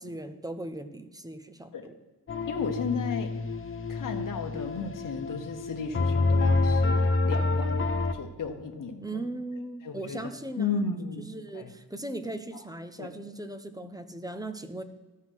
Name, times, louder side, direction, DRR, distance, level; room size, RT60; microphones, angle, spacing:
voice 1, 0.0-1.9 9.0-10.8 11.2-14.8, right 2 dB, 10° right, 9 dB, 0.5 m, -38 dB
sound 1, 2.3-8.1, left 3 dB, 30° left, 0.6 m, -27 dB
voice 2, 2.5-3.4 3.9-9.3 9.8-10.3 10.6-11.7 12.5-12.7 13.0-13.1, left 5 dB, 50° left, 4 dB, 0.9 m, -34 dB
12.5 x 5.6 x 6.1 m, 1.2 s
wide cardioid pair, 160°, 41 cm